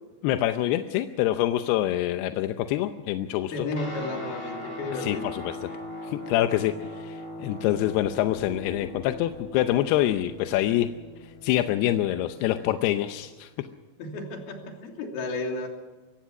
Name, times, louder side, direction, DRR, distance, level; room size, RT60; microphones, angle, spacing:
voice 1, 0.2-3.5 5.0-5.7 6.1-10.9 11.4-13.5, left 13 dB, 80° left, 8 dB, 2.6 m, -26 dB
voice 2, 3.5-5.3 14.0-15.7, left 2 dB, 60° left, 2 dB, 4.7 m, -33 dB
Guitar, 3.7-13.4, left 1 dB, 10° left, 6.2 m, -40 dB
sound 1, 7.6-13.6, equal, 15° right, 6.9 m, -51 dB
23.5 x 18.0 x 6.1 m, 1.3 s
omnidirectional pair, 5.0 m